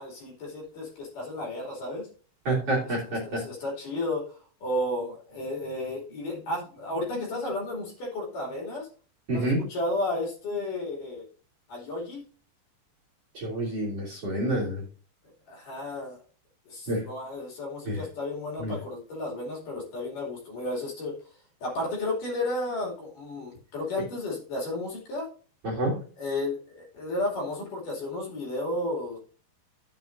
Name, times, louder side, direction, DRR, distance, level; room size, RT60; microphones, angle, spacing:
voice 1, 0.0-2.1 2.8-8.9 9.3-11.3 11.7-12.2 15.5-16.2 16.7-21.1 21.6-25.3 26.2-29.2, left 2 dB, 50° left, -2 dB, 3.8 m, -33 dB
voice 2, 2.5-3.4 9.3-9.6 13.4-14.8 16.9-17.0 17.9-18.0 18.6-18.7 25.6-25.9, right 1 dB, 40° right, -2 dB, 3.3 m, -28 dB
12.0 x 7.7 x 2.6 m, 0.40 s
omnidirectional pair, 5.3 m